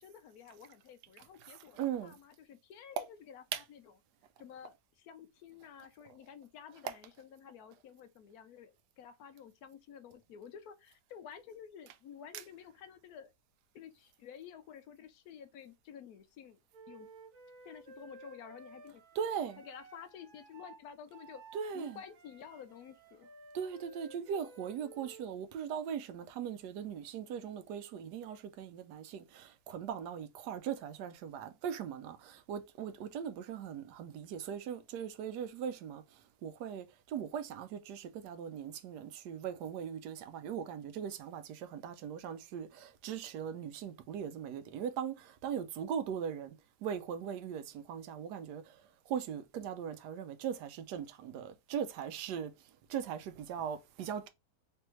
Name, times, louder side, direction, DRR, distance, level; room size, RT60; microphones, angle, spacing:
voice 1, 0.0-3.8 4.4-13.3 13.7-16.6 16.9-17.1 17.6-19.0 19.6-21.4 21.7-23.3, left 8 dB, 70° left, 1.0 m, -51 dB
voice 2, 1.4-2.2 3.5-3.6 6.8-6.9 12.3-12.4 19.2-19.6 21.5-22.0 23.5-36.0 36.4-46.6 46.8-48.6 49.1-52.5 52.9-54.3, right 8 dB, 85° right, 1.2 m, -39 dB
Wind instrument woodwind instrument, 16.7-25.3, right 3 dB, 50° right, 1.3 m, -55 dB
3.4 x 3.4 x 2.9 m
omnidirectional pair, 1.7 m